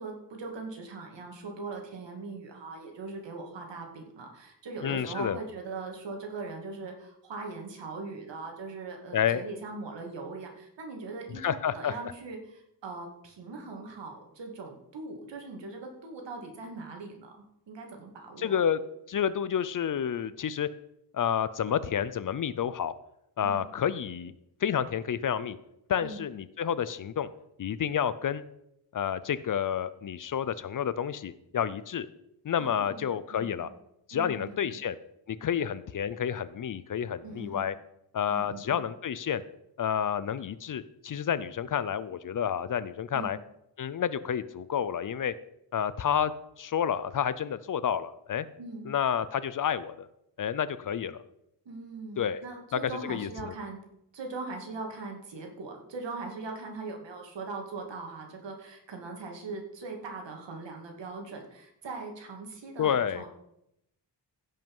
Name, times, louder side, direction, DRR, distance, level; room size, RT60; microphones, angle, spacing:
voice 1, 0.0-18.6 23.4-23.7 26.0-26.2 32.6-33.7 34.1-34.8 37.2-37.7 38.3-38.8 43.1-43.3 48.6-48.9 51.7-53.8 54.1-63.3, right 3 dB, 80° right, 2 dB, 2.4 m, -40 dB
voice 2, 4.8-5.4 9.1-9.4 11.4-11.9 18.4-18.8 19.1-20.7 21.1-22.9 23.4-24.3 24.6-25.6 25.9-27.3 27.6-28.4 28.9-32.1 32.4-33.7 34.1-34.9 35.3-37.7 38.1-39.4 39.8-43.4 43.8-45.3 45.7-46.3 46.6-48.5 48.9-50.1 50.4-51.2 52.2-52.4 53.1-53.5 62.8-63.2, left 8 dB, 50° left, 16 dB, 0.5 m, -29 dB
16.0 x 5.6 x 5.5 m, 0.80 s
wide cardioid pair, 175°, 43 cm